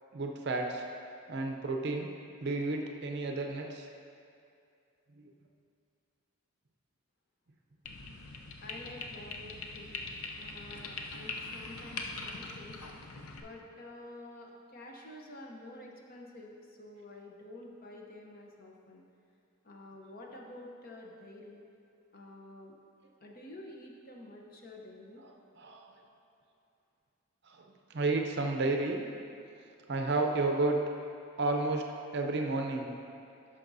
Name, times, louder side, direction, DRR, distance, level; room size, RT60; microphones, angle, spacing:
voice 1, 0.1-0.9 1.3-2.1 2.4-3.9 5.2-5.3 25.2-26.0 27.4-29.0 29.9-30.8 31.4-31.9 32.1-32.9, right 3 dB, 50° right, 3 dB, 0.6 m, -32 dB
sound 1, 7.8-13.4, left 3 dB, 80° left, 0.6 m, -42 dB
voice 2, 8.6-10.0 10.4-12.8 13.3-19.0 19.6-21.6 22.1-22.7 23.2-25.2, left 1 dB, 40° left, 0 dB, 0.8 m, -49 dB
10.5 x 5.9 x 2.7 m, 2.5 s
head